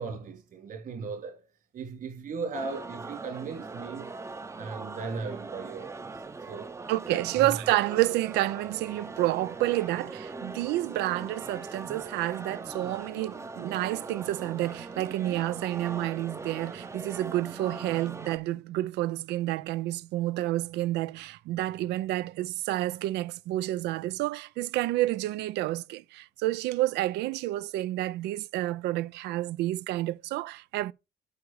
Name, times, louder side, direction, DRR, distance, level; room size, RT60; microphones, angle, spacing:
voice 1, 0.0-1.5 1.7-4.1 4.6-6.1 6.5-6.7 7.1-7.5, right 4 dB, 55° right, 3.7 m, -37 dB
sound 1, 2.5-18.4, right 3 dB, 15° right, 0.6 m, -41 dB
voice 2, 6.9-30.9, right 16 dB, 85° right, 0.5 m, -29 dB
9.5 x 5.3 x 4.7 m
cardioid pair, 110°, 17 cm